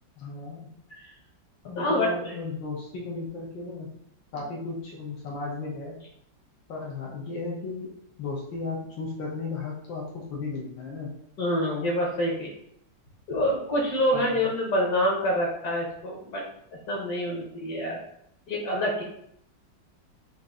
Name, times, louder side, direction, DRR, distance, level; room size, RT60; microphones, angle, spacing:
voice 1, 0.2-0.7 1.6-3.9 4.3-6.0 6.7-7.9 8.2-11.1 14.1-14.5, left 3 dB, 85° left, -4 dB, 1.7 m, -34 dB
voice 2, 1.8-2.1 11.4-12.5 13.3-16.4 16.7-18.0 18.5-19.0, left 1 dB, 60° left, -1 dB, 1.5 m, -26 dB
5.4 x 2.6 x 3.6 m, 0.71 s
omnidirectional pair, 2.0 m